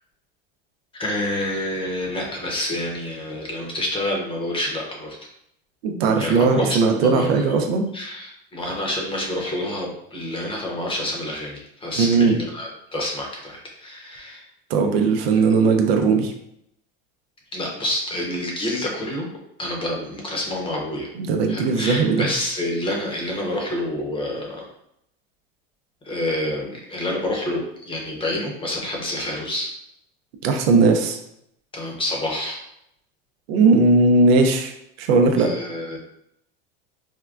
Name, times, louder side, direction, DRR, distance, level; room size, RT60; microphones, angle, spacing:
voice 1, 1.0-5.2 6.2-7.6 7.9-14.4 17.5-19.3 19.6-21.1 21.5-24.7 26.0-29.7 31.7-32.7 35.4-36.0, left 1 dB, 15° left, -1 dB, 0.7 m, -28 dB
voice 2, 5.8-7.9 12.0-12.4 14.7-16.3 21.2-22.3 30.4-31.2 33.5-34.7 35.0-35.5, right 4 dB, 80° right, 4 dB, 0.6 m, -18 dB
3.6 x 2.2 x 2.4 m, 0.77 s
supercardioid pair, 125°, 30 cm